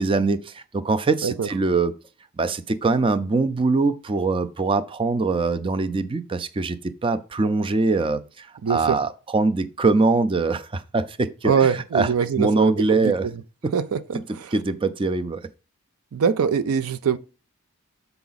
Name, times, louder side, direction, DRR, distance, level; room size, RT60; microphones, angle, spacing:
voice 1, 0.0-1.9 2.4-12.1 12.4-13.3 13.6-13.7 14.5-15.5, right 3 dB, 25° right, 0.4 m, -23 dB
voice 2, 8.6-9.0 11.4-13.3 13.7-14.5 16.1-17.2, right 6 dB, 85° right, 0.4 m, -23 dB
6.9 x 4.7 x 4.0 m
head